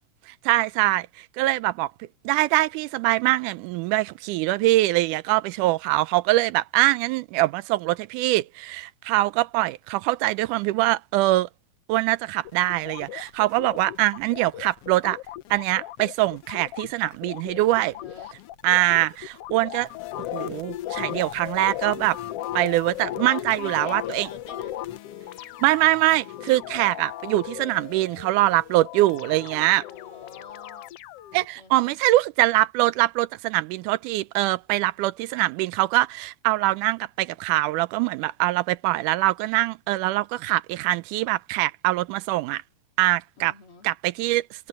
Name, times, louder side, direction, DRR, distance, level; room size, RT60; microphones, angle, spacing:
voice 1, 0.3-11.5 11.9-15.2 15.5-18.0 18.6-19.9 20.3-22.2 22.6-24.3 25.6-29.8 31.3-42.6 43.0-43.5 43.8-44.7, right 17 dB, 90° right, 2.1 m, -23 dB
sound 1, 12.4-31.5, left 14 dB, 80° left, 1.3 m, -37 dB
voice 2, 17.8-18.3 23.4-25.3 29.8-31.0 31.6-32.0 43.4-43.9, left 5 dB, 45° left, 2.9 m, -46 dB
omnidirectional pair, 3.5 m